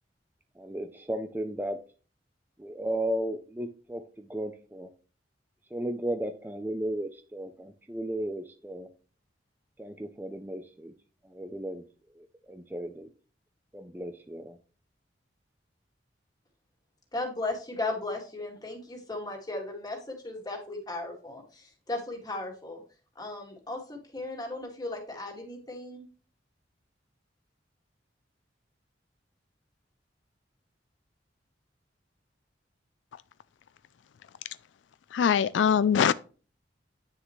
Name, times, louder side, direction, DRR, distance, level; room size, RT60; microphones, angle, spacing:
voice 1, 0.6-1.8 2.6-4.9 5.7-8.9 9.8-10.9 11.2-11.8 12.2-13.1 13.7-14.6, right 1 dB, 10° right, 0.5 m, -35 dB
voice 2, 17.1-22.8 23.2-26.0, left 2 dB, 20° left, 2.1 m, -36 dB
voice 3, 35.1-36.1, left 7 dB, 75° left, 0.3 m, -22 dB
9.7 x 6.5 x 3.2 m
head